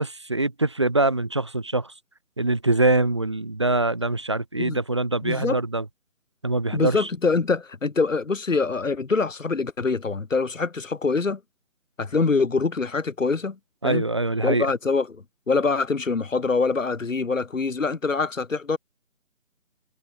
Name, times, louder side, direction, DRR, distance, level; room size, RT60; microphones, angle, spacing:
voice 1, 0.0-1.9 2.4-5.8 6.4-7.1 13.8-14.7, right 2 dB, 20° right, 0.8 m, -23 dB
voice 2, 5.2-5.6 6.7-11.4 12.0-13.6 13.8-14.0 14.4-18.8, left 4 dB, 65° left, 2.4 m, -24 dB
figure-of-eight pair, 155°, 42 cm